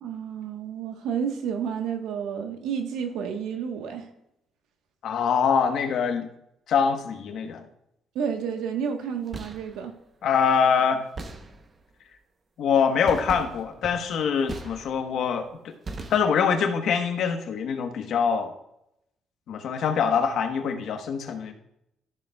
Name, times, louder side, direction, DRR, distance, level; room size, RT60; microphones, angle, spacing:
voice 1, 0.0-4.1 8.1-9.9, right 7 dB, 80° right, 5 dB, 1.2 m, -30 dB
voice 2, 5.0-6.3 6.7-7.6 10.2-11.0 12.6-15.7 16.1-18.5 19.5-21.5, left 6 dB, 60° left, 5 dB, 1.1 m, -24 dB
sound 1, 9.1-9.8 11.2-11.9 13.0-15.2 15.9-16.6, right 3 dB, 30° right, 0.8 m, -39 dB
13.5 x 6.7 x 2.3 m, 0.82 s
cardioid pair, 135°, 0 cm